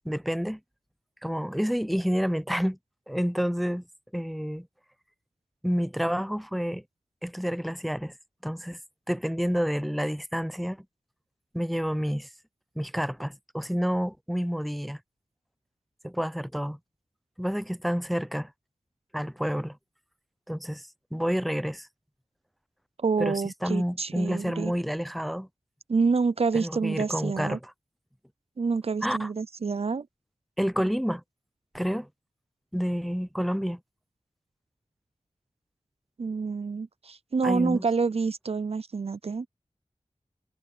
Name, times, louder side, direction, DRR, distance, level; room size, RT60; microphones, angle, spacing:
voice 1, 0.0-0.6 1.2-2.8 3.1-3.8 4.1-4.7 5.6-6.8 7.2-8.1 8.4-8.8 9.1-10.8 11.5-12.3 12.8-15.0 16.0-16.8 17.4-18.5 19.1-19.8 20.5-21.9 23.2-25.5 26.5-27.7 29.0-29.3 30.6-31.2 31.7-32.1 32.7-33.8 37.4-37.8, equal, ahead, 0.6 m, -29 dB
voice 2, 23.0-24.7 25.9-27.6 28.6-30.1 36.2-39.5, right 4 dB, 60° right, 0.6 m, -27 dB
wide cardioid pair, 50°, 12 cm